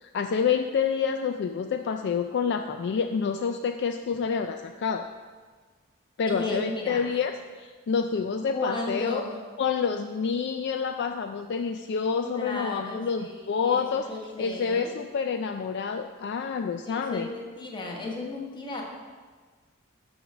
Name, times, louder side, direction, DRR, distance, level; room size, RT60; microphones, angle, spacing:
voice 1, 0.0-5.1 6.2-7.3 7.6-9.2 9.6-14.1 14.4-17.3, left 6 dB, 55° left, 6 dB, 0.3 m, -28 dB
voice 2, 6.3-7.0 8.5-9.4 12.2-15.0 16.8-18.8, left 2 dB, 20° left, -1 dB, 1.3 m, -34 dB
7.0 x 6.4 x 6.0 m, 1.5 s
head